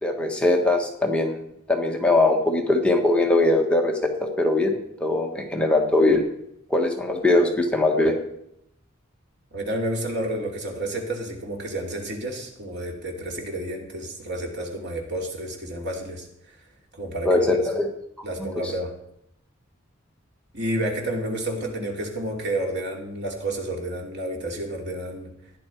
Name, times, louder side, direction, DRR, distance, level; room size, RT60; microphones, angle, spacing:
voice 1, 0.0-1.4 1.7-6.2 6.7-8.1 17.2-17.9 18.4-18.5, left 2 dB, 5° left, 1 dB, 1.5 m, -21 dB
voice 2, 9.5-16.6 16.9-17.4 18.2-18.9 20.5-25.3, right 1 dB, 60° right, 1 dB, 2.9 m, -30 dB
16.0 x 10.5 x 4.6 m, 0.76 s
head